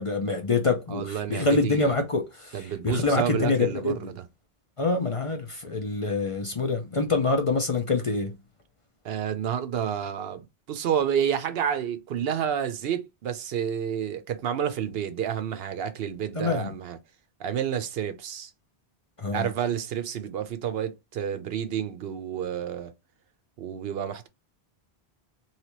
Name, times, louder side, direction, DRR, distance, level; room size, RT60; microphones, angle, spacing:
voice 1, 0.0-3.9 4.8-8.3 16.3-16.7 19.2-19.5, left 3 dB, 40° left, 0.5 m, -26 dB
voice 2, 0.9-2.1 2.5-4.2 9.0-17.0 17.4-18.5 19.3-22.9 23.6-24.3, right 9 dB, 70° right, 0.8 m, -30 dB
3.3 x 2.8 x 2.9 m
omnidirectional pair, 1.1 m